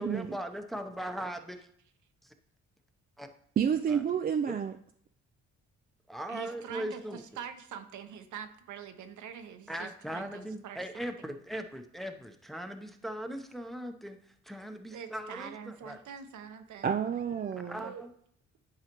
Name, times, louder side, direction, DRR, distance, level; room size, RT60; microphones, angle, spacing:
voice 1, 0.0-1.6 2.2-2.3 3.2-3.3 3.9-4.0 4.5-4.6 6.1-7.2 9.7-16.0 17.6-18.1, equal, ahead, 6 dB, 0.7 m, -39 dB
voice 2, 3.6-4.7 16.8-17.8, right 7 dB, 30° right, 6 dB, 0.4 m, -29 dB
voice 3, 6.3-10.8 14.9-16.9 17.4-18.0, right 8 dB, 75° right, 7 dB, 0.9 m, -44 dB
10.5 x 4.8 x 3.0 m, 0.63 s
cardioid pair, 90°, 30 cm